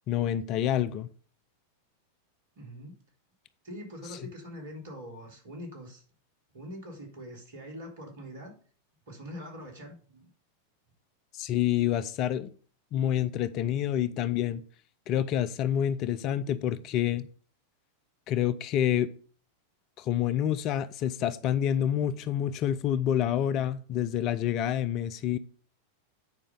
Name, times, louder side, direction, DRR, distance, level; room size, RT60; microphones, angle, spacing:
voice 1, 0.1-1.1 11.3-12.5 12.9-14.6 15.1-17.3 18.3-19.1 20.0-25.4, left 10 dB, 40° left, 0.6 m, -28 dB
voice 2, 2.5-3.0 3.6-6.0 6.5-8.6 9.1-10.3, equal, 55° right, 3.4 m, -43 dB
9.6 x 5.0 x 5.3 m
figure-of-eight pair, 90°, 0 cm